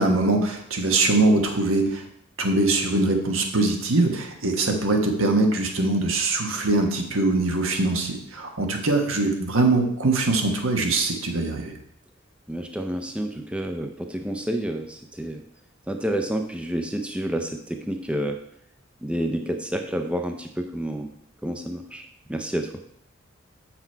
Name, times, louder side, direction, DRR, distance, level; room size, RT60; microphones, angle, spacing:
voice 1, 0.0-2.0 2.4-11.7, right 2 dB, 85° right, 3 dB, 1.3 m, -22 dB
voice 2, 12.5-15.4 15.9-18.4 19.0-21.1 21.4-22.7, right 1 dB, 5° right, 4 dB, 0.5 m, -29 dB
7.2 x 5.9 x 4.5 m, 0.71 s
head